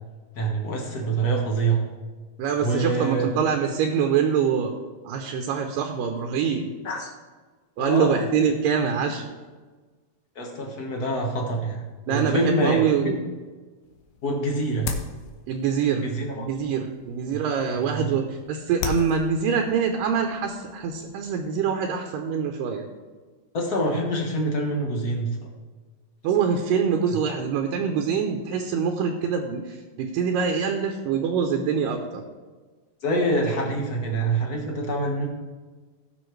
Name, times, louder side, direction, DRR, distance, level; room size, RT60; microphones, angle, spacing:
voice 1, 0.3-1.8 2.6-3.5 6.8-7.1 7.8-8.2 10.3-13.2 14.2-14.9 15.9-16.5 17.3-17.4 17.9-18.1 23.5-25.4 33.0-35.3, right 2 dB, 55° left, 0 dB, 1.0 m, -26 dB
voice 2, 2.4-4.7 5.0-6.7 7.8-9.3 12.1-13.2 15.5-16.1 16.4-22.9 26.2-32.2, right 6 dB, 80° right, 3 dB, 2.4 m, -24 dB
sound 1, 13.8-21.5, left 6 dB, 85° left, 2.6 m, -39 dB
18.5 x 6.3 x 3.2 m, 1.4 s
omnidirectional pair, 3.9 m